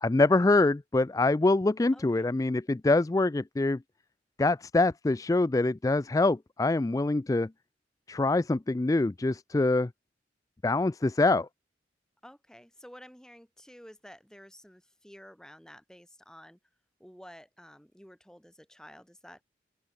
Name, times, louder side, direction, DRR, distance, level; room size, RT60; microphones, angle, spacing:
voice 1, 0.0-3.8 4.4-7.5 8.1-9.9 10.6-11.5, left 2 dB, 20° left, 0.3 m, -25 dB
voice 2, 1.9-2.3 12.2-16.6 17.0-19.4, equal, 5° left, 4.3 m, -51 dB
open air
head